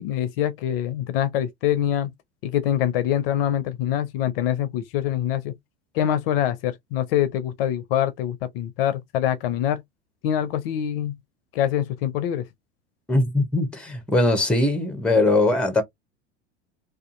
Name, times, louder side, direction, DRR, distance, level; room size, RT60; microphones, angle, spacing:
voice 1, 0.0-2.1 2.4-5.5 5.9-9.8 10.2-11.2 11.5-12.4, left 11 dB, 55° left, 0.5 m, -24 dB
voice 2, 13.1-15.8, left 2 dB, 5° left, 0.7 m, -21 dB
2.5 x 2.3 x 2.4 m
figure-of-eight pair, 80°, 34 cm